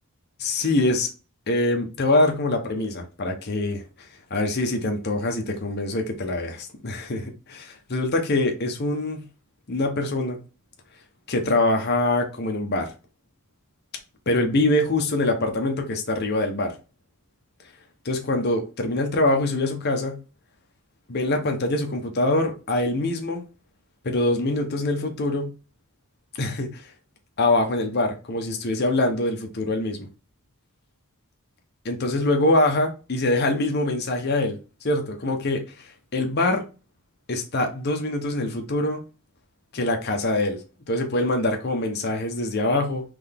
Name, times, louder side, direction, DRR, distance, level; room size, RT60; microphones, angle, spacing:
voice 1, 0.4-1.1 1.5-9.3 9.7-10.4 11.3-12.9 14.3-16.7 18.0-20.2 21.1-23.4 24.0-25.5 26.4-26.9 27.4-30.1 31.8-34.6 34.8-36.6 37.3-39.0 39.7-40.6 40.9-43.0, left 2 dB, 45° left, 0.8 m, -24 dB
3.8 x 3.4 x 3.5 m
head